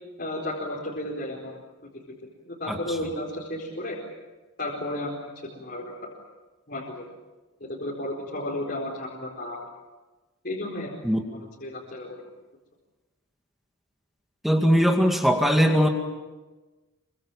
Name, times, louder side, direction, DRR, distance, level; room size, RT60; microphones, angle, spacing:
voice 1, 0.2-1.6 1.9-2.0 2.4-4.0 4.6-5.2 5.5-6.1 6.7-7.0 7.6-9.6 10.4-10.9 11.6-12.2, left 1 dB, 45° left, -4 dB, 4.6 m, -33 dB
voice 2, 14.4-15.9, equal, ahead, 3 dB, 2.2 m, -20 dB
27.5 x 24.5 x 7.3 m, 1.2 s
head